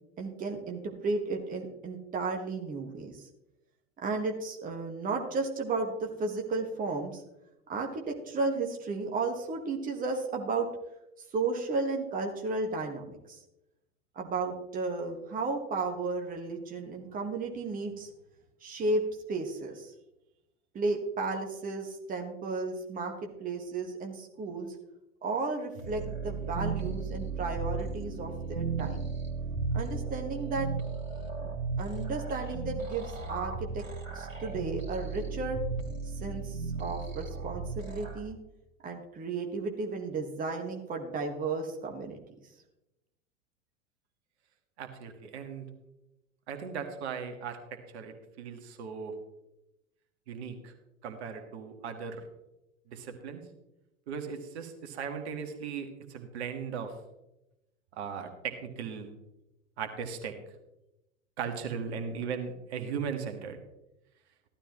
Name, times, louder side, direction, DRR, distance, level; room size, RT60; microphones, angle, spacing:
voice 1, 0.2-3.3 4.0-7.2 7.7-10.7 11.3-13.4 14.1-18.1 18.6-19.9 20.7-24.8 25.2-29.1 29.7-30.7 31.4-33.8 34.1-35.6 36.0-38.4 38.8-42.2, right 3 dB, 20° right, 3 dB, 1.5 m, -34 dB
sound 1, 25.7-38.2, right 4 dB, 90° right, 2.3 m, -35 dB
voice 2, 44.8-45.7 46.5-49.2 50.3-50.7 51.0-52.2 52.9-53.4 54.1-57.0 57.9-59.1 59.8-60.4 61.4-63.6, right 6 dB, 55° right, 6 dB, 1.9 m, -37 dB
15.0 x 12.5 x 3.1 m, 0.92 s
figure-of-eight pair, 90°, 39 cm